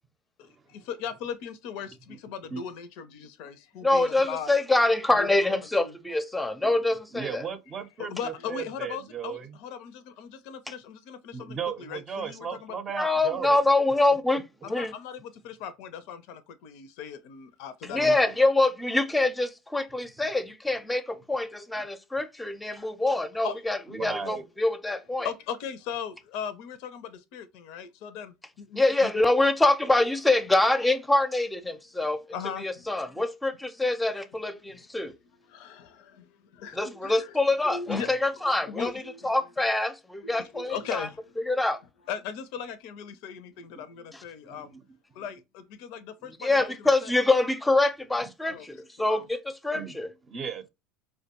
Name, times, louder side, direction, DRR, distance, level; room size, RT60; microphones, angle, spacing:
voice 1, 0.4-4.5 5.1-5.3 5.8-5.9 8.0-12.8 14.6-18.0 23.4-23.6 24.0-24.1 25.2-29.1 31.7-31.8 32.3-32.9 33.1-33.2 34.7-34.8 35.5-37.3 37.6-38.1 38.6-39.3 40.2-41.2 42.1-44.8 45.1-47.1 48.4-48.7 49.0-49.2, left 7 dB, 65° left, 0.5 m, -38 dB
voice 2, 3.8-7.4 12.9-14.9 17.8-25.3 28.7-32.2 32.6-35.1 36.7-38.9 39.2-41.1 41.5-41.8 44.1-44.2 46.4-50.1, left 2 dB, 10° left, 0.6 m, -25 dB
voice 3, 7.1-9.6 11.3-13.6 18.0-18.2 23.9-24.4 43.8-43.9 44.4-44.8 45.2-45.3 49.7-50.0 50.3-50.7, right 6 dB, 35° right, 0.6 m, -36 dB
4.7 x 2.2 x 2.9 m
hypercardioid pair, 80°, 0 cm